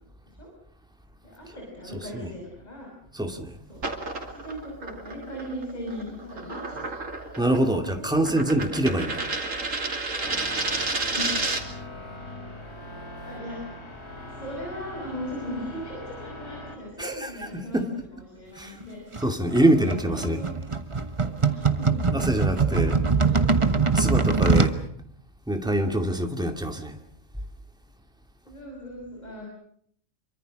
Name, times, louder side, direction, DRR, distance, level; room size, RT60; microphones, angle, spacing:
voice 1, 1.2-2.9 3.7-3.8 4.2-6.9 8.0-8.3 10.8-11.5 12.1-12.4 13.2-13.6 14.4-17.8 18.1-19.3 19.7-20.5 21.5-22.0 22.5-23.7 28.5-29.5, equal, 35° left, -1 dB, 6.4 m, -38 dB
voice 2, 1.9-2.3 3.1-3.6 7.4-9.2 17.0-17.9 18.6-18.7 19.2-20.4 22.1-23.0 23.9-24.8 25.5-27.0, right 1 dB, 5° right, 5 dB, 2.3 m, -25 dB
sound 1, 3.7-11.8, right 3 dB, 80° right, 3.0 m, -31 dB
sound 2, 10.2-16.8, left 1 dB, 55° left, 3.3 m, -41 dB
sound 3, 19.1-24.8, right 4 dB, 25° right, 1.2 m, -23 dB
27.0 x 24.0 x 6.4 m, 0.64 s
omnidirectional pair, 1.3 m